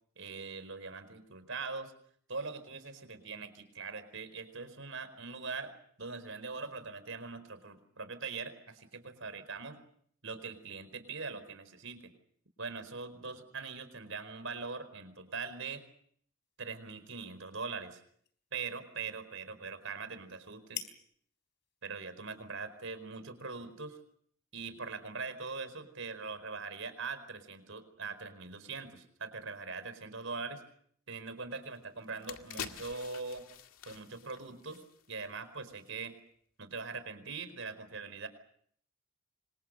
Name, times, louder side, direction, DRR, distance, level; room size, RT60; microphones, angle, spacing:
voice 1, 0.2-1.9 2.3-5.7 6.0-9.8 10.2-12.1 12.6-15.8 16.6-18.0 18.5-20.9 21.8-24.0 24.5-30.6 31.1-33.5 33.8-34.8 35.1-36.2 36.6-38.3, right 4 dB, 65° right, 11 dB, 4.8 m, -42 dB
sound 1, 16.4-24.1, left 11 dB, 55° left, 3.8 m, -52 dB
sound 2, 31.6-31.7 32.0-35.3 35.6-35.8, left 7 dB, 80° left, 2.1 m, -46 dB
28.5 x 25.5 x 6.7 m, 0.64 s
head